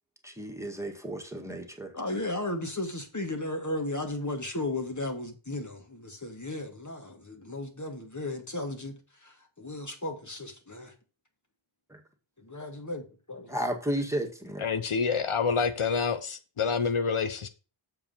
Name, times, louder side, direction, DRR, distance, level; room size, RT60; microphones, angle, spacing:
voice 1, 0.2-1.9 11.9-12.0 13.5-14.7, right 1 dB, 5° right, 1.9 m, -33 dB
voice 2, 1.9-8.9 9.2-10.9 12.4-13.5, left 2 dB, 35° left, 1.9 m, -35 dB
voice 3, 14.6-17.5, left 5 dB, 85° left, 0.9 m, -27 dB
7.3 x 4.7 x 5.7 m
wide cardioid pair, 45°, 49 cm